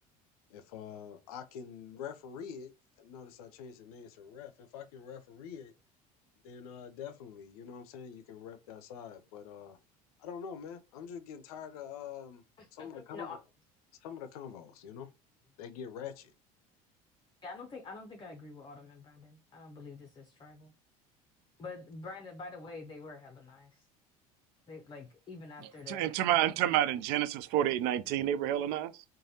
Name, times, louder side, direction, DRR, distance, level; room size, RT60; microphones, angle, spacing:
voice 1, 0.5-2.7 3.0-5.7 6.4-9.8 10.2-12.4 12.7-13.4 14.0-15.1 15.6-16.3, left 7 dB, 75° left, 0.5 m, -45 dB
voice 2, 12.6-13.4 17.4-20.7 21.6-23.9 24.7-26.7, left 3 dB, 25° left, 0.6 m, -47 dB
voice 3, 25.9-29.0, right 12 dB, 60° right, 0.4 m, -29 dB
3.2 x 2.2 x 2.7 m
hypercardioid pair, 70°, 19 cm